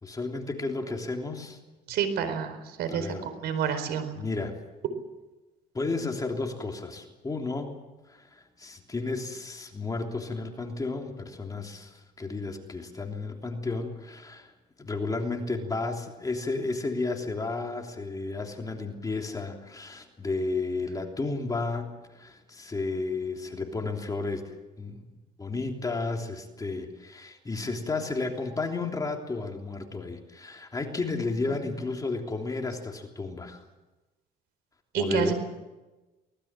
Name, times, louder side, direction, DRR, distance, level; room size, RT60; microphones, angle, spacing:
voice 1, 0.0-1.6 2.9-3.8 4.2-4.5 5.7-7.7 8.1-14.5 14.8-25.0 25.4-33.6 34.9-35.3, left 3 dB, 20° left, 2 dB, 3.3 m, -32 dB
voice 2, 1.9-3.1 3.4-4.2 31.2-31.3 34.9-35.3, right 7 dB, 75° right, 10 dB, 4.4 m, -29 dB
24.0 x 20.0 x 7.5 m, 1.1 s
cardioid pair, 110°, 17 cm